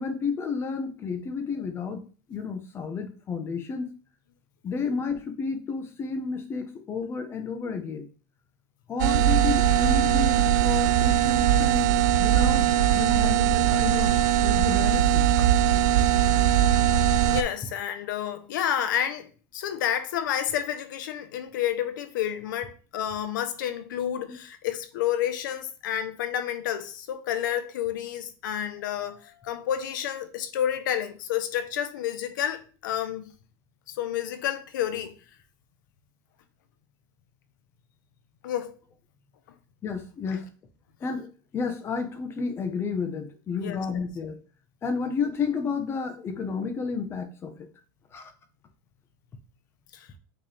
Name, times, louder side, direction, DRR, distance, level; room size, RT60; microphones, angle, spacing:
voice 1, 0.0-2.0 2.3-3.9 4.6-8.1 8.9-11.9 12.2-12.7 12.9-14.1 14.4-15.3 24.3-24.4 39.8-40.5 41.0-44.4 44.8-47.7 48.1-48.3, left 5 dB, 25° left, 1.1 m, -31 dB
sound 1, 9.0-17.4, right 10 dB, 65° right, 0.5 m, -21 dB
voice 2, 17.2-33.3 33.9-35.1 38.4-38.7 43.6-44.0 49.9-50.1, left 10 dB, 90° left, 1.1 m, -30 dB
8.7 x 3.5 x 3.5 m
supercardioid pair, 150°, 10 cm